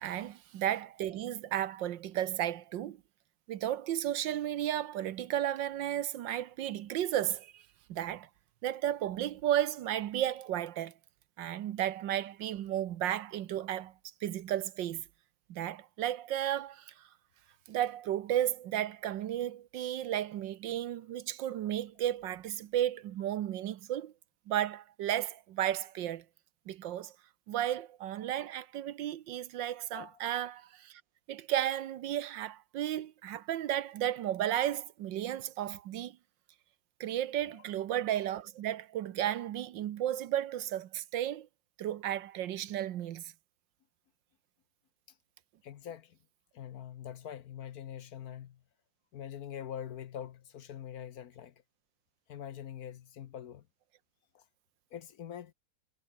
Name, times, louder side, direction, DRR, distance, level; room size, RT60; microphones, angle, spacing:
voice 1, 0.0-3.0 3.5-7.6 7.9-8.3 8.6-10.9 11.4-13.9 14.2-15.0 15.5-17.1 17.7-24.1 24.5-26.2 26.7-27.1 27.5-31.0 31.3-36.2 37.0-41.5 41.8-43.3, right 11 dB, 75° right, 1.6 m, -33 dB
voice 2, 45.6-46.2 46.5-48.6 49.1-51.5 52.3-53.7 54.3-54.4 54.9-55.5, left 9 dB, 60° left, 1.2 m, -44 dB
omnidirectional pair, 2.0 m